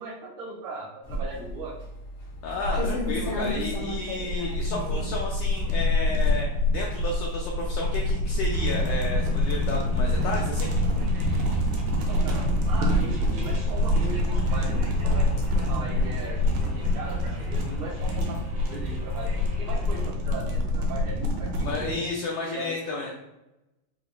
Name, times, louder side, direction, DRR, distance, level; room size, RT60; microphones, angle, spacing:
voice 1, 0.0-1.7 12.0-15.3 15.7-18.4 18.7-19.3 19.6-22.0 22.5-23.1, right 2 dB, 45° right, -8 dB, 1.9 m, -38 dB
sound 1, 1.0-20.2, left 1 dB, 60° left, 1.7 m, -38 dB
voice 2, 2.4-6.5 6.7-10.7 21.6-23.1, left 3 dB, 90° left, -2 dB, 1.6 m, -32 dB
sound 2, 2.6-21.9, left 1 dB, 80° right, 2.3 m, -26 dB
sound 3, 8.5-20.1, equal, 60° right, 1.3 m, -37 dB
6.8 x 2.4 x 2.2 m, 0.94 s
omnidirectional pair, 3.9 m